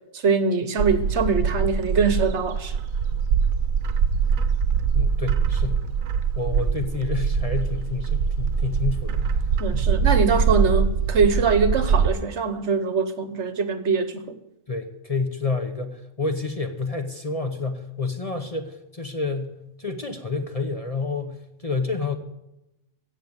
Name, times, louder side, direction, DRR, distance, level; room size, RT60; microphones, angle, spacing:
voice 1, 0.1-2.7 9.6-14.2, right 5 dB, 60° right, 1.2 m, -23 dB
Bird, 0.8-12.1, right 6 dB, 80° right, 1.1 m, -23 dB
voice 2, 4.9-5.8 6.4-9.2 9.7-9.9 14.7-21.4 21.6-22.2, left 4 dB, 30° left, 0.9 m, -29 dB
16.0 x 7.3 x 8.0 m
omnidirectional pair, 1.4 m